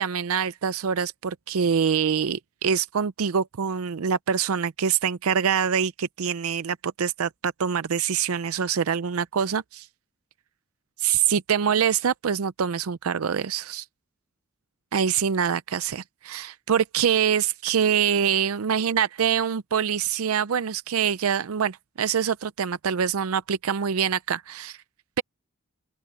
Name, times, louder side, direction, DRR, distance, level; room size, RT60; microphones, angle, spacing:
voice 1, 0.0-9.9 11.0-13.8 14.9-24.8, right 7 dB, 90° right, 0.5 m, -25 dB
open air
head